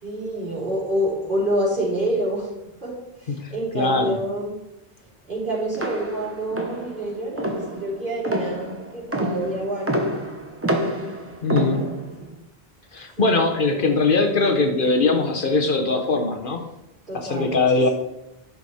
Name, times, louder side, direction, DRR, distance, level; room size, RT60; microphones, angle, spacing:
voice 1, 0.0-2.5 2.8-4.6 5.3-10.2 10.9-12.4 13.2-13.3 13.7-14.4 17.1-17.9, right 1 dB, 55° right, -6 dB, 3.9 m, -28 dB
voice 2, 3.4-4.2 11.4-11.8 12.9-16.6 17.1-17.9, left 3 dB, 60° left, 5 dB, 1.1 m, -21 dB
sound 1, 5.7-12.2, equal, 15° right, 0.9 m, -28 dB
10.5 x 6.3 x 4.2 m, 0.89 s
omnidirectional pair, 1.0 m